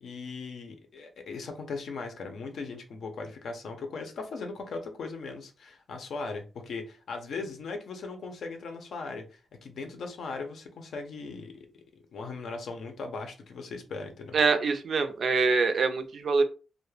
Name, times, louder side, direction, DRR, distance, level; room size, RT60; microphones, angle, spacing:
voice 1, 0.0-9.2 9.6-11.8 12.1-14.4, left 4 dB, 70° left, 5 dB, 0.5 m, -38 dB
voice 2, 14.3-16.4, right 4 dB, 55° right, 8 dB, 0.4 m, -24 dB
2.2 x 2.1 x 3.2 m, 0.34 s
wide cardioid pair, 135°, 0 cm